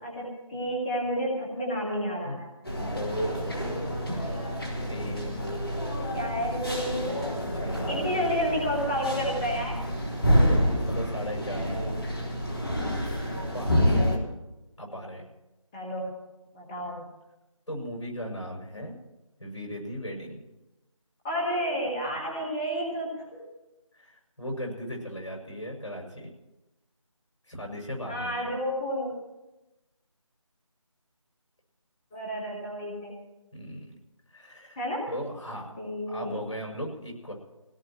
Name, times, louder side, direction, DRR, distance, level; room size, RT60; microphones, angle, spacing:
voice 1, 0.0-2.5 3.2-3.3 4.1-5.5 6.1-7.3 7.9-9.8 10.4-10.5 11.7-11.9 15.7-16.1 16.5-17.1 21.2-23.4 28.0-29.1 32.1-33.1 34.7-35.1 35.8-36.4, equal, 10° left, -3 dB, 1.5 m, -31 dB
sound 1, 2.6-14.2, equal, 45° left, 3.8 m, -28 dB
voice 2, 2.8-3.4 4.9-5.6 7.6-8.2 10.9-11.9 13.5-14.0 14.8-15.3 17.7-18.9 19.4-20.4 23.9-26.3 27.5-28.5 33.5-34.0 34.3-34.8 35.1-35.8 36.1-37.3, equal, 65° left, 0 dB, 6.9 m, -37 dB
21.0 x 17.5 x 3.1 m, 1.0 s
figure-of-eight pair, 165°, 17 cm